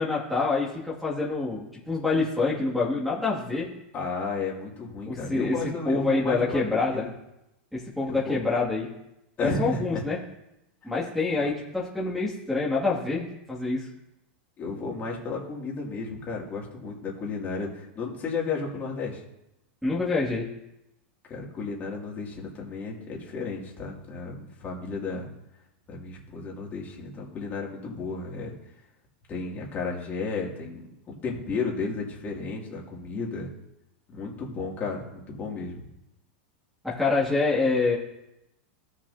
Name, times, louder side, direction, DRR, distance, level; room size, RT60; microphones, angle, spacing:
voice 1, 0.0-3.7 5.1-5.6 5.9-7.0 7.7-8.9 9.4-10.2 10.8-13.9 19.8-20.5 36.8-38.0, left 3 dB, ahead, -8 dB, 2.3 m, -26 dB
voice 2, 3.9-7.1 8.0-8.4 9.4-10.0 10.8-10.9 11.4-11.5 14.6-19.2 21.3-25.3 25.9-28.5 29.3-33.5 34.1-35.9, left 4 dB, 30° left, -2 dB, 2.6 m, -33 dB
16.0 x 6.4 x 2.8 m, 0.89 s
supercardioid pair, 130°, 6 cm